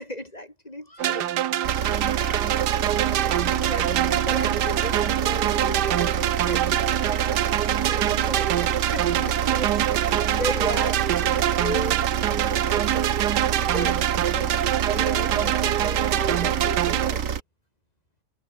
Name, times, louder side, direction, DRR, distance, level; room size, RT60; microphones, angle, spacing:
voice 1, 0.0-2.6 3.2-13.2 13.6-14.6 14.8-17.4, left 1 dB, 25° left, 4.2 m, -37 dB
sound 1, 1.0-17.1, right 12 dB, 80° right, 1.4 m, -25 dB
sound 2, 1.6-17.4, right 7 dB, 55° right, 1.5 m, -28 dB
omnidirectional pair, 1.8 m